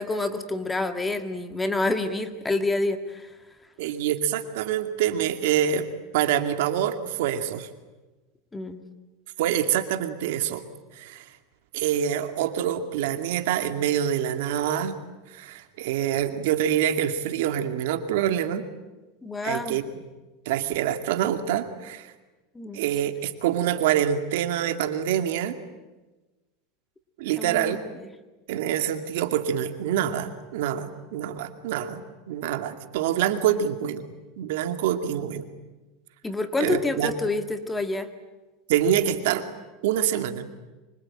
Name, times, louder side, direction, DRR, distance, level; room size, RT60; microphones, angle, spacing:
voice 1, 0.0-3.3 8.5-8.8 19.2-19.8 22.6-22.8 27.4-27.9 36.2-38.1, left 2 dB, 10° left, 8 dB, 1.9 m, -28 dB
voice 2, 3.8-5.9 6.1-7.7 9.4-10.6 10.9-11.3 11.7-15.0 15.3-18.7 19.4-19.8 20.5-22.1 22.7-25.6 27.2-27.8 28.5-32.0 32.3-34.0 34.4-35.4 36.6-37.1 38.7-39.4 39.8-40.5, right 10 dB, 75° right, 8 dB, 2.4 m, -26 dB
25.5 x 24.5 x 9.0 m, 1.2 s
supercardioid pair, 135°, 0 cm